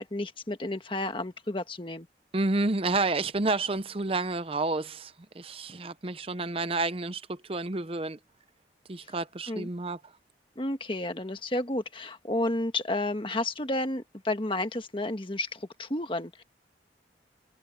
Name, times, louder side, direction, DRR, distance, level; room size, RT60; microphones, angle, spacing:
voice 1, 0.0-2.1 9.5-9.7 10.5-16.4, left 1 dB, 30° left, 1.5 m, -31 dB
voice 2, 2.3-8.2 8.9-10.0, right 3 dB, 30° right, 0.6 m, -30 dB
head